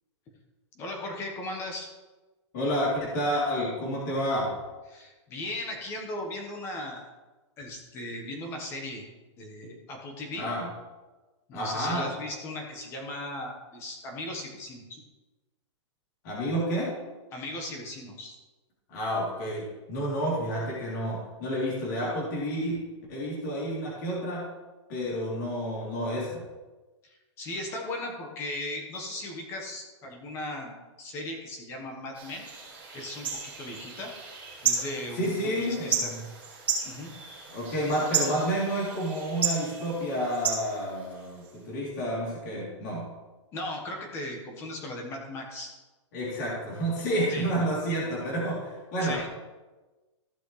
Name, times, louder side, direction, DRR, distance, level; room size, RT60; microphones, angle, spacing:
voice 1, 0.7-1.9 4.9-7.1 7.6-9.0 9.4-10.5 11.5-15.0 17.3-18.4 27.0-32.5 32.9-34.1 34.6-36.1 36.8-37.1 43.5-45.7 47.3-47.5 49.0-49.3, left 1 dB, 15° left, 2 dB, 1.4 m, -37 dB
voice 2, 2.5-4.5 10.3-10.7 11.5-12.1 16.2-16.9 18.9-22.8 23.1-24.5 24.9-26.4 35.1-36.2 37.5-43.1 46.1-49.3, equal, 35° left, -6 dB, 3.3 m, -30 dB
sound 1, 32.1-41.5, right 5 dB, 10° right, 3.6 m, -33 dB
15.5 x 6.2 x 3.3 m, 1.2 s
hypercardioid pair, 175°, 16 cm